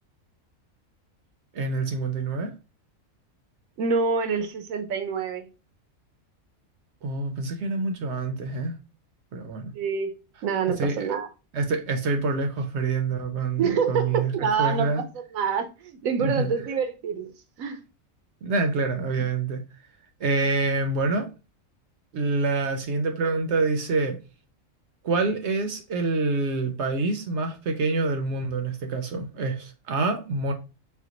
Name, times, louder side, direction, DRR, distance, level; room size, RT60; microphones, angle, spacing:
voice 1, 1.5-2.5 7.0-8.7 9.3-9.7 10.8-11.1 11.5-15.0 16.2-16.5 18.4-19.6 20.2-21.3 22.1-24.2 25.0-30.5, right 3 dB, 65° right, 0.8 m, -26 dB
voice 2, 3.8-5.5 9.7-10.1 10.4-11.3 13.6-15.0 15.3-17.3 17.6-17.8, right 6 dB, 85° right, 1.1 m, -26 dB
4.3 x 2.2 x 3.8 m
omnidirectional pair, 1.4 m